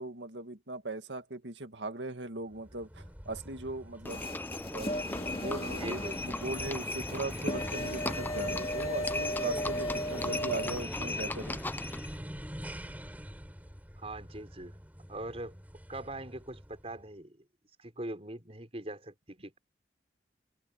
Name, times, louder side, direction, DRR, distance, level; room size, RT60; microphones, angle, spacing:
voice 1, 0.0-4.2 4.7-5.0 5.3-11.6, right 2 dB, 80° right, 2.0 m, -39 dB
sound 1, 2.5-17.0, equal, 10° right, 7.3 m, -44 dB
Livestock farm animals working animals, 4.0-12.2, left 2 dB, 10° left, 0.5 m, -38 dB
sound 2, 4.1-10.8, equal, 30° left, 2.3 m, -37 dB
voice 2, 5.8-6.2 14.0-14.8 15.1-15.6 15.9-17.4 17.8-19.6, right 1 dB, 35° right, 5.2 m, -42 dB
head